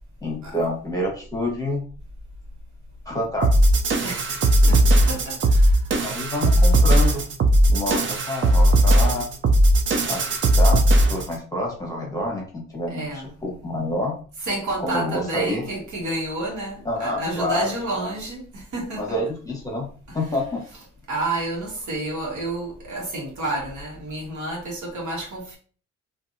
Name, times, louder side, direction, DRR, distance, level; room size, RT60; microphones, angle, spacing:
voice 1, 0.2-1.8 3.0-3.5 4.6-4.9 6.0-7.2 7.7-9.3 10.1-14.1 14.8-15.6 16.8-18.1 19.0-19.9 20.1-20.6, left 1 dB, 10° left, 1.2 m, -28 dB
sound 1, 3.4-11.3, right 1 dB, 40° right, 0.5 m, -17 dB
voice 2, 4.0-5.8 12.9-13.3 14.4-19.2 20.1-20.2 21.1-25.6, right 2 dB, 70° right, 1.3 m, -30 dB
2.6 x 2.5 x 2.7 m
cardioid pair, 90°, 30 cm